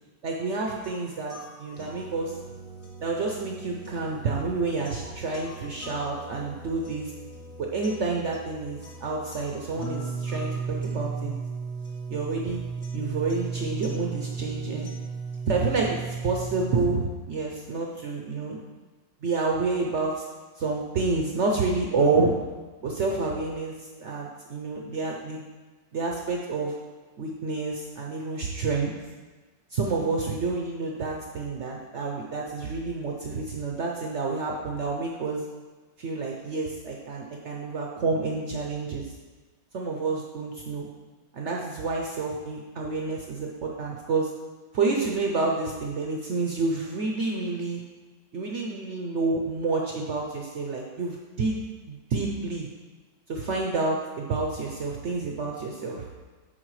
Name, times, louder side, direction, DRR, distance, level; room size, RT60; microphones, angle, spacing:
voice 1, 0.2-2.4 3.0-7.1 7.6-11.4 12.1-12.6 12.9-14.9 15.5-18.6 19.2-20.3 20.6-22.3 22.8-25.4 25.9-26.7 27.2-28.9 29.7-35.4 36.0-39.1 39.7-40.9 41.3-44.3 44.7-47.8 48.3-51.6 51.9-52.7 53.3-56.1, right 3 dB, 80° right, 0 dB, 0.6 m, -29 dB
sound 1, 0.8-16.8, right 4 dB, 30° left, 0.6 m, -36 dB
10.5 x 4.3 x 3.1 m, 1.3 s
omnidirectional pair, 2.0 m